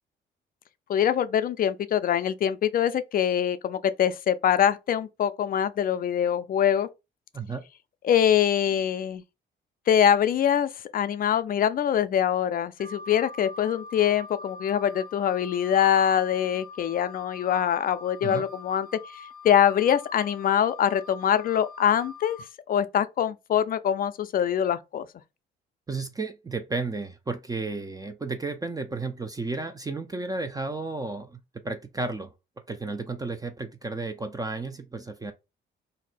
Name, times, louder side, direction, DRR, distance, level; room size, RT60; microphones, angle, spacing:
voice 1, 0.9-6.9 8.0-9.2 9.9-18.9 19.4-22.4 22.7-25.1, left 9 dB, 45° left, 0.4 m, -24 dB
Wind instrument woodwind instrument, 12.8-22.4, left 3 dB, 45° right, 1.1 m, -44 dB
voice 2, 25.9-31.4 31.6-32.3 32.7-35.3, right 3 dB, 20° right, 0.4 m, -33 dB
2.6 x 2.1 x 4.0 m
cardioid pair, 90°, 20 cm